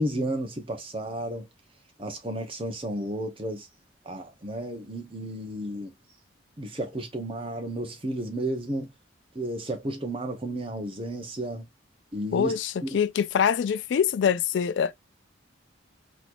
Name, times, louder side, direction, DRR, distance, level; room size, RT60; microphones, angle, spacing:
voice 1, 0.0-1.5 2.0-3.7 4.0-5.9 6.6-8.9 9.3-11.6 12.1-12.5 12.8-13.0, right 1 dB, 30° right, 1.0 m, -32 dB
voice 2, 12.3-14.9, left 7 dB, 65° left, 0.3 m, -24 dB
4.2 x 3.0 x 2.5 m
head